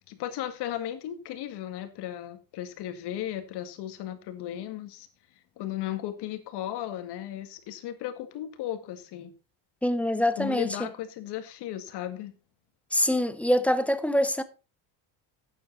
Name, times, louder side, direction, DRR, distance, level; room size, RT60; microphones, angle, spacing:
voice 1, 0.1-5.1 5.6-9.3 10.4-12.3, left 12 dB, 60° left, 2.0 m, -35 dB
voice 2, 9.8-10.9 12.9-14.4, left 1 dB, 5° left, 0.5 m, -25 dB
12.5 x 8.7 x 4.0 m
cardioid pair, 165°, 47 cm